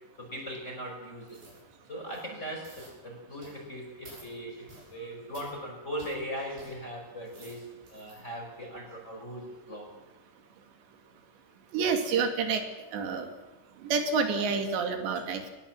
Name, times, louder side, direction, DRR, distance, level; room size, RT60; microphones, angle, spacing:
voice 1, 0.2-1.4 1.9-7.6 7.9-9.9 14.4-14.5, equal, 15° left, -1 dB, 5.4 m, -39 dB
sound 1, 1.3-1.6 2.0-2.3 2.6-3.0 3.4-3.7 4.0-4.3 4.7-4.9 5.3-5.5 6.0-6.2 6.6-6.7 7.1-8.2 8.7-8.8, right 2 dB, 65° right, 8.2 m, -52 dB
voice 2, 11.7-12.6 12.9-13.3 13.8-15.5, right 5 dB, 85° right, 5 dB, 4.5 m, -28 dB
21.5 x 20.5 x 7.5 m, 1.1 s
omnidirectional pair, 4.9 m